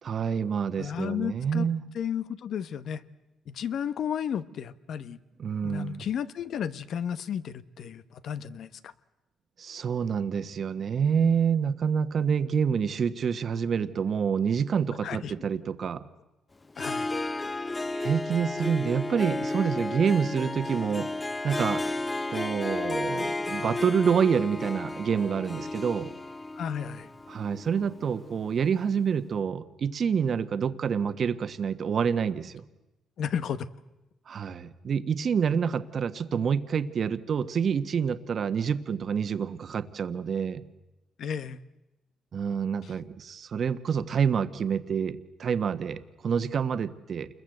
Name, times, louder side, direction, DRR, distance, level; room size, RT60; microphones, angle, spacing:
voice 1, 0.0-1.8 5.4-6.0 9.6-16.0 17.9-21.1 21.4-21.8 22.3-26.1 27.3-32.6 34.3-40.6 42.3-47.3, right 7 dB, 55° right, 11 dB, 1.4 m, -27 dB
voice 2, 0.8-1.7 1.9-3.0 3.5-5.2 5.6-8.9 15.0-15.3 16.8-17.1 26.6-27.1 33.2-33.7 41.2-41.6 42.8-43.0, left 8 dB, 65° left, 14 dB, 1.2 m, -33 dB
Harp, 16.7-28.6, left 2 dB, 20° left, 0.9 m, -33 dB
29.0 x 22.0 x 8.0 m, 1.0 s
cardioid pair, 90°, 0 cm